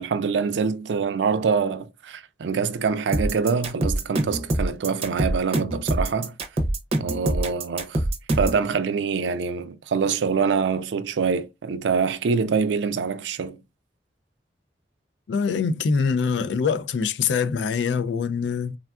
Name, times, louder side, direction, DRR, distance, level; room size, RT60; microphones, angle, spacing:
voice 1, 0.0-6.3 7.0-8.0 8.4-13.6, right 5 dB, 90° right, 0.4 m, -25 dB
sound 1, 3.1-8.6, right 1 dB, 35° right, 0.6 m, -24 dB
voice 2, 15.3-18.8, left 5 dB, 85° left, 0.3 m, -24 dB
3.5 x 2.3 x 2.3 m
head